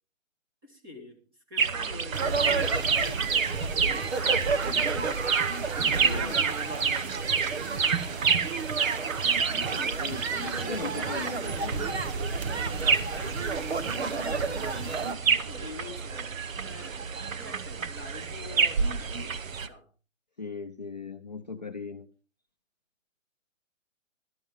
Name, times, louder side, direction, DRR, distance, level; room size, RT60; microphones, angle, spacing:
voice 1, 0.6-1.2 1.5-5.1 5.9-9.1 13.1-13.4 13.7-14.9 15.5-16.3 16.6-19.9, left 2 dB, 20° right, 2 dB, 1.9 m, -46 dB
sound 1, 1.6-19.7, right 6 dB, 85° right, 1.1 m, -29 dB
sound 2, 2.1-15.1, right 4 dB, 55° right, 1.2 m, -32 dB
voice 2, 6.0-6.4 9.7-12.2 20.4-22.1, left 4 dB, 35° left, 4 dB, 0.6 m, -39 dB
14.5 x 12.5 x 3.6 m, 0.36 s
hypercardioid pair, 175°, 39 cm